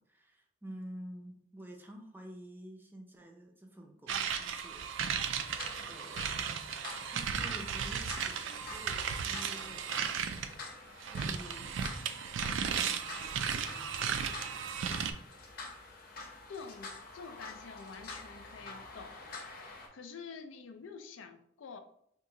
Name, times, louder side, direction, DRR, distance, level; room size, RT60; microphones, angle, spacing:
voice 1, 0.0-4.8 5.5-10.1 11.1-11.8 12.5-14.8, right 1 dB, 10° right, 0.5 m, -50 dB
sound 1, 4.1-10.5 11.0-15.1, right 7 dB, 80° right, 0.3 m, -35 dB
sound 2, 5.4-19.9, left 3 dB, 50° left, 0.7 m, -48 dB
voice 2, 16.5-21.8, left 5 dB, 85° left, 0.4 m, -48 dB
2.9 x 2.5 x 3.7 m
head